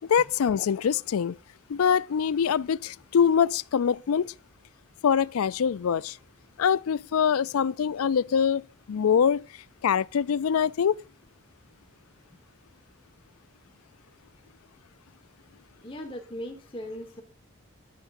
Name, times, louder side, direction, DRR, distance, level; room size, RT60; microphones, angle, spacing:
voice 1, 0.1-1.4 1.7-4.3 5.0-6.2 6.6-8.6 8.9-9.4 9.8-10.9, left 7 dB, 90° left, 0.4 m, -24 dB
voice 2, 15.8-17.2, equal, 25° left, 1.6 m, -38 dB
13.0 x 11.0 x 2.6 m
head